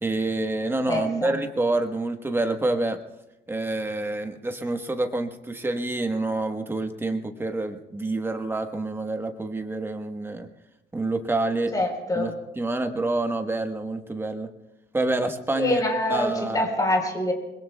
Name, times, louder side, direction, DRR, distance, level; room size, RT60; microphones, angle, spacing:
voice 1, 0.0-3.0 3.5-10.5 10.9-11.7 12.1-14.5 14.9-15.8 16.1-16.7, right 2 dB, 10° right, 5 dB, 1.2 m, -27 dB
voice 2, 0.9-1.4 11.7-12.4 15.6-17.3, left 1 dB, 20° left, 2 dB, 3.9 m, -25 dB
28.5 x 21.0 x 2.3 m, 0.96 s
cardioid pair, 140°, 20 cm